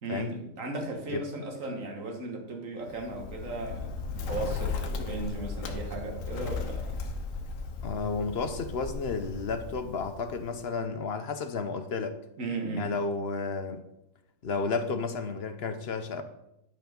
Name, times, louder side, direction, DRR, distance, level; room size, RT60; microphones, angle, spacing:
voice 1, 0.0-7.0 12.4-12.9, right 2 dB, 65° right, 1 dB, 2.0 m, -36 dB
Bird, 2.9-10.7, left 4 dB, 70° left, 1.2 m, -36 dB
voice 2, 7.8-12.2 12.8-13.8 14.4-16.2, left 4 dB, 55° left, 9 dB, 0.9 m, -32 dB
11.0 x 5.3 x 5.2 m, 0.86 s
omnidirectional pair, 1.5 m